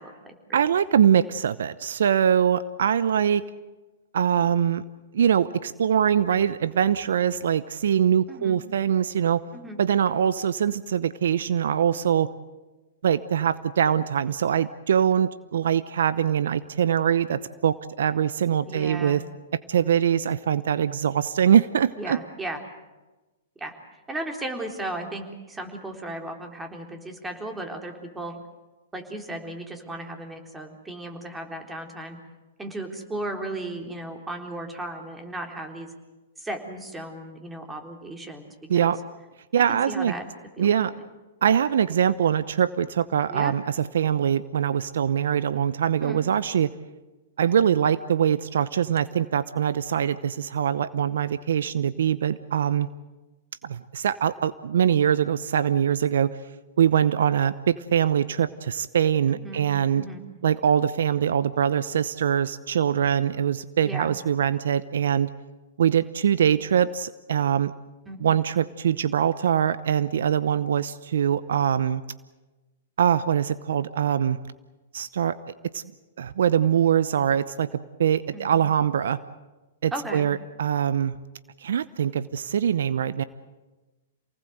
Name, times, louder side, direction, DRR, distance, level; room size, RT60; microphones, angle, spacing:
voice 1, 0.0-0.6 8.3-8.6 9.5-9.8 18.7-19.2 22.0-22.6 23.6-23.7 24.1-28.4 28.9-32.2 32.6-35.9 36.4-38.9 39.7-40.2 40.6-41.0 43.3-43.6 46.0-46.2 59.3-59.7 60.0-60.2 63.8-64.1 68.1-68.2 78.3-78.5 79.9-80.3, right 1 dB, 10° right, 3 dB, 3.8 m, -35 dB
voice 2, 0.5-3.4 4.1-4.8 5.1-9.4 9.8-12.3 13.0-19.2 19.7-22.2 38.7-39.0 39.5-40.1 40.6-40.9 41.4-46.7 47.4-52.9 53.6-56.4 56.8-60.0 60.4-65.3 65.8-67.7 68.2-72.0 73.0-74.4 74.9-75.4 75.7-75.8 76.2-79.2 79.8-81.1 81.6-83.2, right 8 dB, 70° right, 16 dB, 0.8 m, -23 dB
28.0 x 19.0 x 8.0 m, 1.2 s
hypercardioid pair, 115°, 0 cm